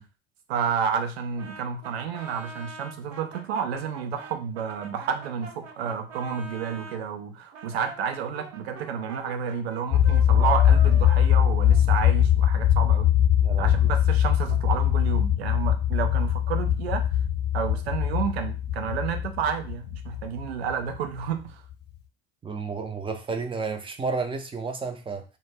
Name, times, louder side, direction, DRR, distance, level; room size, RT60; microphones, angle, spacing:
voice 1, 0.5-13.1 13.6-17.0 17.5-21.6, right 7 dB, 90° right, 6 dB, 0.5 m, -30 dB
Brass instrument, 1.4-7.0 7.5-12.3, right 3 dB, 50° right, 0.8 m, -44 dB
sound 1, 9.9-21.2, left 10 dB, 35° left, 0.6 m, -22 dB
voice 2, 13.4-13.8 22.4-25.2, right 4 dB, 15° right, 6 dB, 0.5 m, -31 dB
2.0 x 2.0 x 3.2 m, 0.31 s
hypercardioid pair, 70°, 30 cm